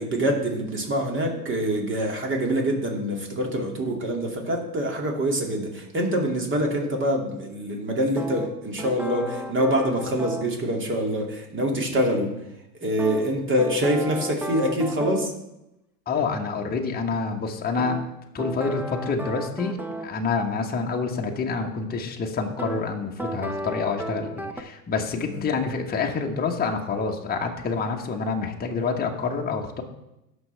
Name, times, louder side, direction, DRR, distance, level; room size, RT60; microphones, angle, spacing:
voice 1, 0.0-12.3 12.8-15.3 25.2-25.5, equal, 25° right, 1 dB, 2.5 m, -25 dB
sound 1, 8.2-10.5 13.0-15.4 17.8-20.1 22.6-22.8 23.2-24.6, equal, 5° right, 0.7 m, -33 dB
voice 2, 16.1-18.0 18.3-29.8, left 4 dB, 20° left, 1 dB, 1.3 m, -27 dB
17.0 x 6.4 x 3.4 m, 0.90 s
hypercardioid pair, 100°, 46 cm